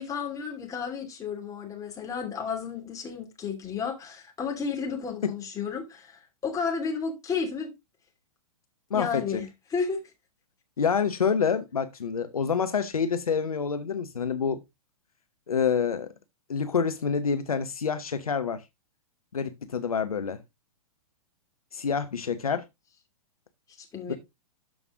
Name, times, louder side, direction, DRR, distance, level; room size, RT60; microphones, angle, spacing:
voice 1, 0.0-7.7 8.9-10.0 23.8-24.2, left 5 dB, 15° left, 2.7 m, -32 dB
voice 2, 8.9-9.4 10.8-14.6 15.5-16.1 16.5-18.6 19.3-20.4 21.7-22.6 24.1-24.2, left 6 dB, 70° left, 0.9 m, -27 dB
12.5 x 5.3 x 3.6 m
figure-of-eight pair, 110°, 19 cm